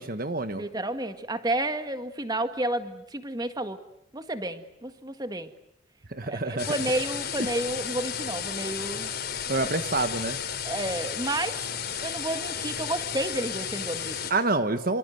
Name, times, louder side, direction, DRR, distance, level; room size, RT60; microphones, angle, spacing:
voice 1, 0.0-0.6 6.1-6.8 9.5-10.4 14.3-15.0, right 3 dB, 45° right, 9 dB, 1.3 m, -27 dB
voice 2, 0.5-3.8 4.1-5.5 6.3-9.1 9.5-9.7 10.6-11.6 12.0-14.2, right 1 dB, 20° right, 9 dB, 1.8 m, -31 dB
sound 1, 6.6-14.3, left 8 dB, 50° left, 4.0 m, -33 dB
27.5 x 26.5 x 8.0 m, 0.77 s
head